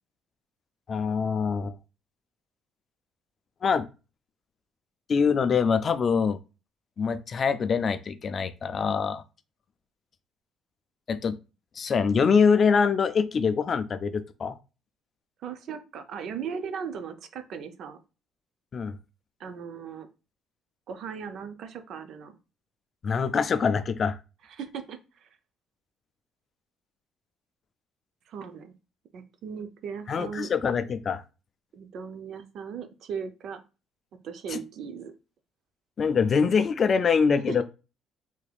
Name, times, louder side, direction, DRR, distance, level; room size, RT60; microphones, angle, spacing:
voice 1, 0.9-1.7 3.6-3.9 5.1-6.4 7.0-9.2 11.1-11.4 11.8-14.6 18.7-19.0 23.0-24.2 30.1-31.2 34.5-34.6 36.0-37.6, left 6 dB, 35° left, 0.3 m, -24 dB
voice 2, 15.4-18.0 19.4-20.1 20.9-22.4 24.4-25.3 28.3-28.7 29.1-30.5 31.7-33.6 34.2-35.1 37.5-37.6, right 6 dB, 60° right, 0.5 m, -37 dB
3.4 x 3.3 x 2.3 m
cardioid pair, 130°, 0 cm